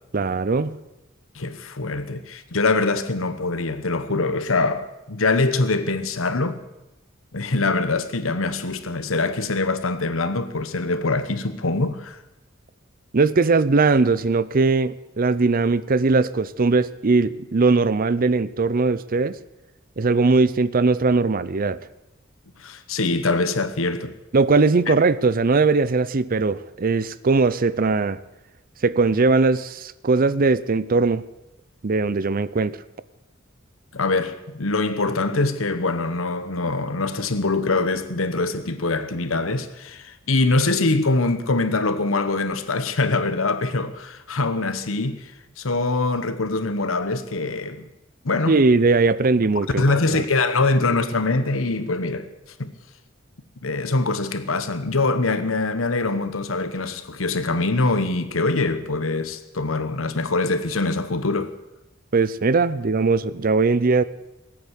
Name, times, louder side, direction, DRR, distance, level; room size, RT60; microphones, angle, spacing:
voice 1, 0.1-0.8 13.1-19.4 20.0-21.8 24.3-28.2 28.8-31.2 31.8-32.8 48.5-49.8 50.1-50.2 62.1-64.0, right 3 dB, 45° right, 0.6 m, -20 dB
voice 2, 1.3-6.6 7.3-12.2 22.6-24.1 33.9-45.3 45.6-47.8 48.2-48.6 49.8-52.3 52.6-52.7 53.6-61.5, left 3 dB, 85° left, 1.2 m, -23 dB
19.5 x 8.7 x 8.2 m
head